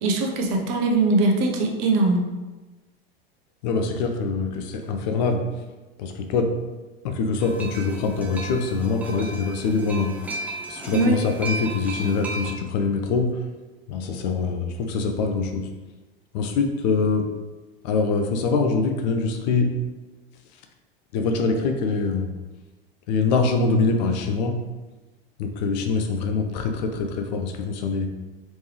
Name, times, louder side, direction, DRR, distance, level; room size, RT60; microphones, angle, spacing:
voice 1, 0.0-2.2 10.9-11.2, right 2 dB, 45° right, 1 dB, 0.7 m, -21 dB
voice 2, 3.6-5.4 6.0-6.5 7.0-10.1 10.7-13.4 13.9-15.7 16.3-17.3 17.8-19.9 21.1-22.3 23.1-24.6 25.4-28.1, left 4 dB, 50° left, 5 dB, 0.5 m, -24 dB
sound 1, 7.4-12.5, right 2 dB, 5° right, 0.5 m, -35 dB
3.3 x 3.1 x 3.2 m, 1.2 s
figure-of-eight pair, 85°, 29 cm